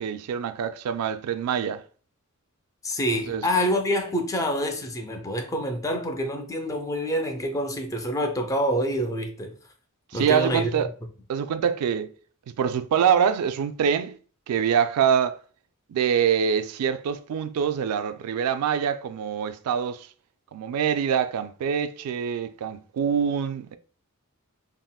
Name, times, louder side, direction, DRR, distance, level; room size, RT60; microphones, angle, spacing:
voice 1, 0.0-1.8 3.3-3.4 10.1-10.9 11.3-12.1 12.6-14.2 14.5-15.4 15.9-20.1 20.5-23.8, right 7 dB, 90° right, 0.3 m, -25 dB
voice 2, 2.8-9.5 10.1-10.7, equal, 15° left, 0.3 m, -27 dB
3.6 x 2.1 x 2.2 m
head